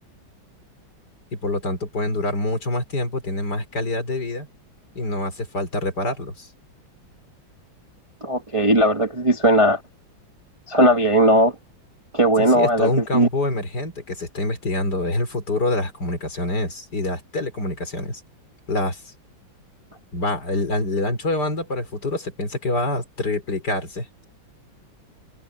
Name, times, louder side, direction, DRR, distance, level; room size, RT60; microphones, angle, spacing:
voice 1, 1.3-4.5 4.9-6.5 12.4-18.2 18.7-19.0 20.1-24.1, left 2 dB, 55° left, 5.1 m, -26 dB
voice 2, 8.2-9.8 10.7-11.5 12.1-13.3, right 1 dB, 20° right, 1.2 m, -18 dB
omnidirectional pair, 2.1 m